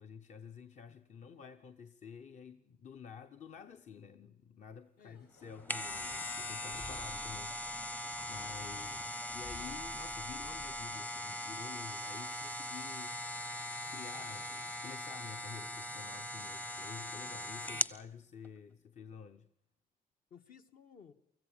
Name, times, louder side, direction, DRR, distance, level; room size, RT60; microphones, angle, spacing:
voice 1, 0.0-19.5, left 7 dB, 50° left, 1.0 m, -51 dB
sound 1, 5.1-12.0, left 4 dB, 85° left, 5.3 m, -67 dB
sound 2, 5.4-18.0 18.4-18.5, left 1 dB, 10° left, 0.7 m, -40 dB
Breathing, 5.8-10.9, left 3 dB, 30° left, 1.2 m, -53 dB
voice 2, 6.9-7.3 17.6-17.9 20.3-21.1, left 7 dB, 65° left, 1.8 m, -58 dB
24.5 x 14.5 x 8.8 m
cardioid pair, 135°, 16 cm